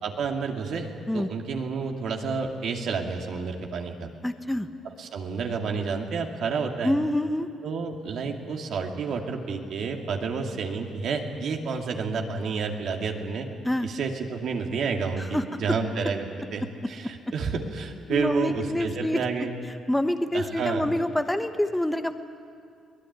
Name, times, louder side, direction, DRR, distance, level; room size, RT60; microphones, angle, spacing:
voice 1, 0.0-4.1 5.0-6.9 7.6-13.5 13.8-19.5 20.3-20.9, right 5 dB, 70° right, 2 dB, 2.4 m, -30 dB
voice 2, 4.2-4.7 6.8-7.5 13.6-13.9 15.2-15.6 18.1-19.2 19.9-22.1, left 1 dB, 5° left, 8 dB, 1.1 m, -26 dB
23.0 x 18.0 x 9.5 m, 2.3 s
cardioid pair, 90°, 0 cm